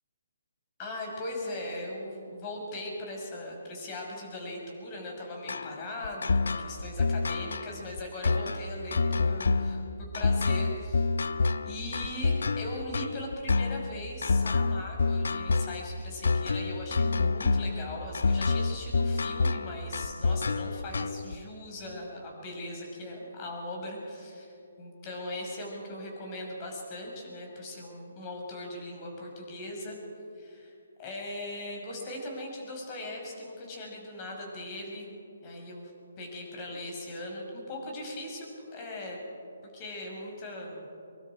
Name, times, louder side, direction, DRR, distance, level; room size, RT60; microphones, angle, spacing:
voice 1, 0.8-24.5 24.8-30.0 30.3-30.7 31.0-35.1 35.4-35.9 36.2-39.2 39.6-40.8, left 1 dB, 30° left, 0 dB, 5.9 m, -39 dB
sound 1, 5.5-21.4, left 3 dB, 65° left, 0.7 m, -28 dB
23.5 x 23.0 x 4.9 m, 2.5 s
figure-of-eight pair, 140°, 0 cm